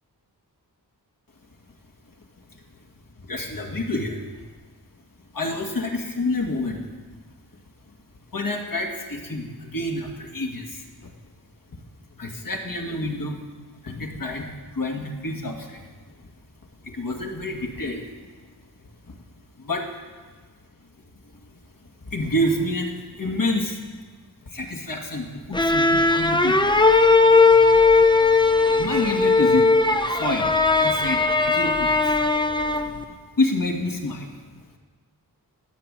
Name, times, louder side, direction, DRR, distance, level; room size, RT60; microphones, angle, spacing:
voice 1, 3.2-4.2 5.3-6.9 8.3-10.8 11.7-11.8 12.2-13.4 13.8-15.8 16.2-16.3 16.8-18.1 19.1-19.2 19.6-19.9 22.0-23.8 24.5-26.7 28.8-29.7 30.1-32.3 32.7-32.9 33.4-34.4, left 1 dB, 55° left, 1 dB, 2.2 m, -28 dB
sound 1, 25.5-33.0, left 3 dB, 10° left, 0.8 m, -18 dB
14.5 x 7.2 x 9.0 m, 1.4 s
wide cardioid pair, 70°, 40 cm